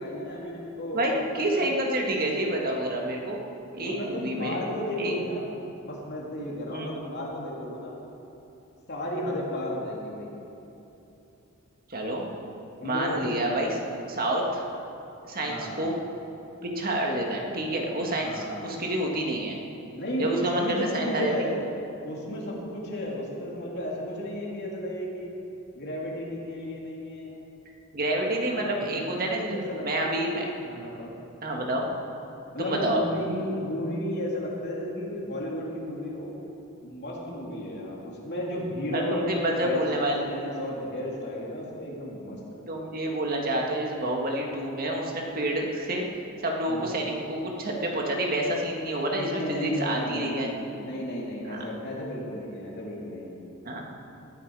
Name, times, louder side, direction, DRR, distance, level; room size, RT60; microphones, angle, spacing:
voice 1, 0.0-1.7 3.7-5.5 5.8-8.0 8.9-10.3 12.8-13.2 15.4-15.8 18.2-18.6 19.9-21.6 22.0-25.3 25.7-27.3 28.5-31.1 32.5-36.3 36.8-42.6 46.7-46.9 49.1-53.4, left 1 dB, 50° left, -4 dB, 3.1 m, -33 dB
voice 2, 0.9-3.4 3.7-4.6 5.0-5.1 6.7-6.9 11.9-12.3 12.8-13.8 14.1-14.6 15.3-16.0 16.6-19.6 20.2-21.3 27.9-30.5 31.4-31.9 32.6-33.0 38.9-40.2 42.7-46.1 46.4-50.5 51.5-51.6 53.7-53.8, right 1 dB, 45° right, 0 dB, 1.8 m, -28 dB
20.0 x 11.0 x 4.8 m, 2.9 s
head